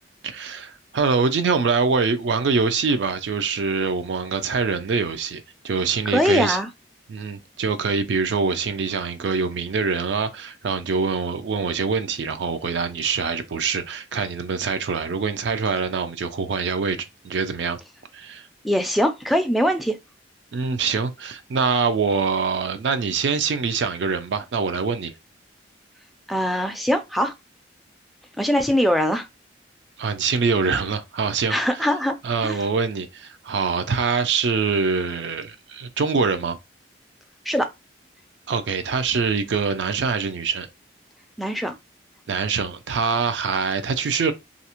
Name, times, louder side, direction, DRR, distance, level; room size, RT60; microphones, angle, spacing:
voice 1, 0.2-6.6 7.1-17.8 18.1-18.5 20.5-25.1 30.0-31.6 32.2-36.6 38.5-40.7 42.3-44.3, right 5 dB, 70° right, 0.4 m, -24 dB
voice 2, 6.1-6.7 18.6-20.0 26.3-27.3 28.4-29.3 31.5-32.1 32.4-32.6 37.5-37.7 41.4-41.7, equal, ahead, 0.3 m, -22 dB
2.5 x 2.0 x 2.8 m
head